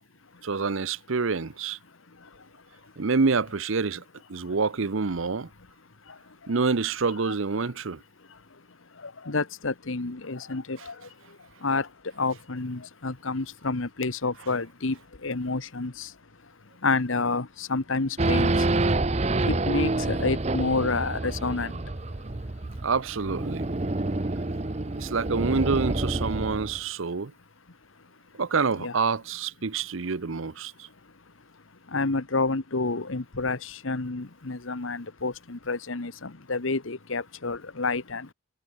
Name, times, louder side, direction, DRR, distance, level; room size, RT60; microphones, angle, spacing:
voice 1, 0.4-1.8 3.0-4.0 4.3-5.5 6.5-8.0 22.8-23.6 25.0-27.3 28.3-30.9, right 4 dB, 75° right, 0.8 m, -27 dB
voice 2, 1.9-2.9 4.4-4.6 6.0-6.5 7.2-7.7 8.2-18.9 19.2-22.6 27.7-28.1 28.8-28.9 30.8-31.2 31.5-38.3, left 3 dB, 70° left, 1.3 m, -30 dB
Race car auto racing / Idling / Accelerating revving vroom, 18.2-26.8, right 2 dB, 30° right, 0.8 m, -27 dB
head